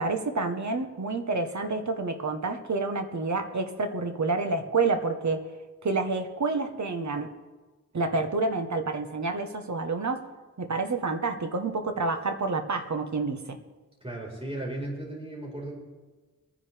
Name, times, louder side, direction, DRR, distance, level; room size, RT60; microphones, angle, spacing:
voice 1, 0.0-5.5 5.8-7.3 7.9-10.2 10.6-13.6, right 3 dB, 60° right, 6 dB, 1.3 m, -28 dB
voice 2, 14.0-15.7, right 1 dB, 20° right, -2 dB, 4.9 m, -35 dB
23.0 x 10.0 x 3.5 m, 1.3 s
wide cardioid pair, 85°, 32 cm